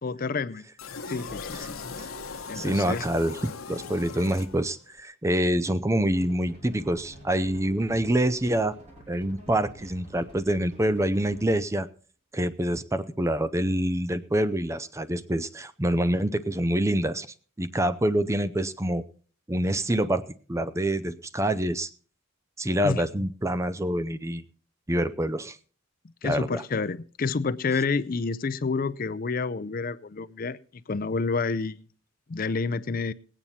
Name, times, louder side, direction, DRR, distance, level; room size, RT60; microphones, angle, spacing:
voice 1, 0.0-0.6 1.1-1.8 2.5-3.0 22.8-23.0 26.2-30.6 30.9-31.8 32.3-33.1, left 4 dB, 45° left, 0.5 m, -29 dB
sound 1, 0.8-5.0, left 4 dB, 90° left, 1.0 m, -39 dB
voice 2, 2.5-8.8 9.1-11.9 12.3-17.3 17.6-19.0 19.5-20.2 20.5-21.9 22.6-24.4 24.9-25.6 26.2-26.6, right 1 dB, 15° right, 0.5 m, -26 dB
sound 2, 6.1-11.6, equal, 35° right, 4.8 m, -49 dB
18.5 x 9.0 x 4.2 m
head